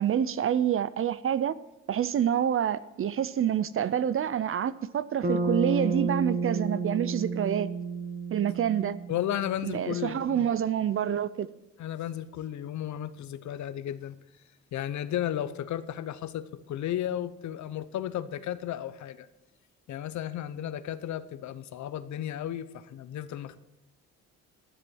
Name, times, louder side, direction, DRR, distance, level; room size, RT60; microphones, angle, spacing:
voice 1, 0.0-1.6 1.9-7.7 8.3-9.0 9.7-11.5, right 9 dB, 45° right, 0.5 m, -27 dB
Bass guitar, 5.2-9.6, right 4 dB, 30° right, 1.2 m, -31 dB
voice 2, 9.1-10.5 11.8-14.2 14.7-19.3 19.9-23.6, left 11 dB, 70° left, 0.8 m, -34 dB
12.5 x 7.5 x 6.3 m
cardioid pair, 90°, 30 cm